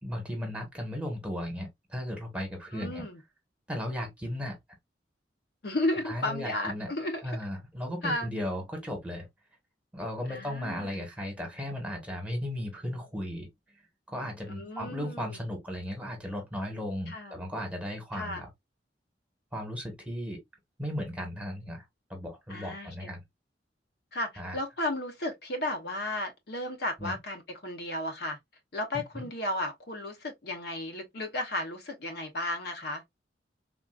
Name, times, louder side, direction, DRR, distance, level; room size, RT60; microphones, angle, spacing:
voice 1, 0.0-3.0 3.7-4.5 6.0-6.9 7.2-9.3 9.9-13.5 14.1-18.5 19.5-20.4 20.8-21.8 22.1-23.2 24.4-24.6 27.0-27.1 29.1-29.3, equal, 5° right, 1.1 m, -36 dB
voice 2, 2.7-3.2 5.6-7.3 8.0-8.3 10.3-11.1 14.5-15.4 17.1-17.4 18.1-18.4 22.5-23.2 24.1-28.4 28.7-33.0, left 1 dB, 65° left, 0.8 m, -34 dB
3.7 x 2.4 x 2.3 m
head